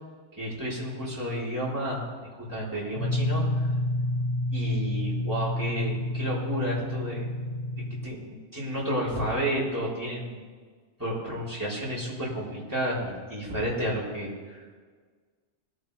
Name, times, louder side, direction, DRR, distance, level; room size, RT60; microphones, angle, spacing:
voice 1, 0.4-2.0 2.3-3.7 4.5-7.3 8.0-10.4 11.0-14.7, equal, 15° right, -7 dB, 4.2 m, -31 dB
sound 1, 2.9-8.0, left 1 dB, 55° left, 3.1 m, -29 dB
20.0 x 9.6 x 3.4 m, 1.5 s
omnidirectional pair, 1.2 m